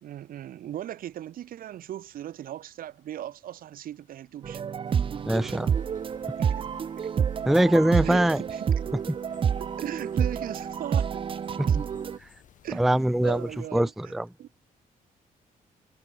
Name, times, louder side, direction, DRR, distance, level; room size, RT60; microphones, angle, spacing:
voice 1, 0.0-4.6 6.4-6.7 7.0-7.3 8.0-8.8 9.6-11.2 11.6-11.9 12.6-14.1 14.4-14.5, right 12 dB, 70° right, 1.8 m, -38 dB
sound 1, 4.4-12.2, right 7 dB, 35° right, 0.8 m, -28 dB
sound 2, 4.8-13.7, left 9 dB, 55° left, 7.4 m, -56 dB
voice 2, 5.3-5.7 7.5-8.4 11.6-11.7 12.8-13.4 13.7-14.3, right 1 dB, ahead, 0.4 m, -22 dB
cardioid pair, 170°, 15 cm